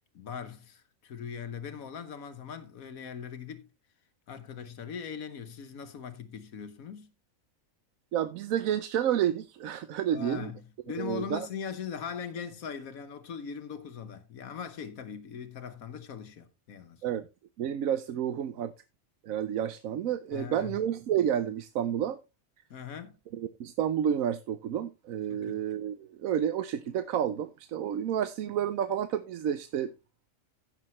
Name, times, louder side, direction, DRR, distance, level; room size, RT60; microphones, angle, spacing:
voice 1, 0.1-3.7 4.3-7.1 10.1-10.6 10.9-17.2 20.3-20.8 22.7-23.2 25.3-25.6, left 7 dB, 85° left, 1.4 m, -40 dB
voice 2, 8.1-10.5 11.0-11.5 17.0-17.3 17.6-18.7 19.2-22.2 23.3-29.9, right 9 dB, 80° right, 1.1 m, -30 dB
15.0 x 6.7 x 3.1 m
omnidirectional pair, 1.4 m